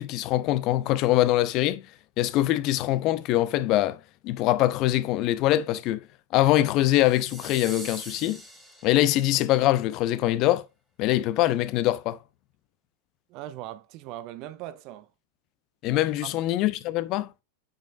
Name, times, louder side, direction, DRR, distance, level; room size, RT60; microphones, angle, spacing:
voice 1, 0.0-1.8 2.2-6.0 6.3-8.4 8.8-10.6 11.0-12.2 15.8-17.3, left 15 dB, 40° left, 0.5 m, -23 dB
sound 1, 6.9-9.4, equal, ahead, 2.0 m, -43 dB
voice 2, 13.3-15.1 16.2-16.3, right 13 dB, 40° right, 0.5 m, -39 dB
8.6 x 5.1 x 2.4 m
figure-of-eight pair, 90°, 0 cm